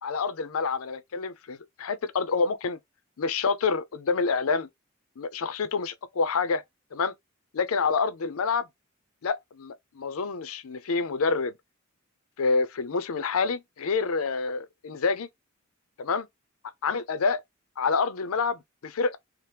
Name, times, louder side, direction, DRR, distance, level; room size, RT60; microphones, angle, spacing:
voice 1, 0.0-2.8 3.2-4.7 5.2-6.6 6.9-7.1 7.5-8.7 9.2-11.5 12.4-15.3 16.0-16.3 16.8-17.4 17.8-19.2, left 4 dB, 80° left, 0.5 m, -27 dB
2.8 x 2.1 x 3.3 m
head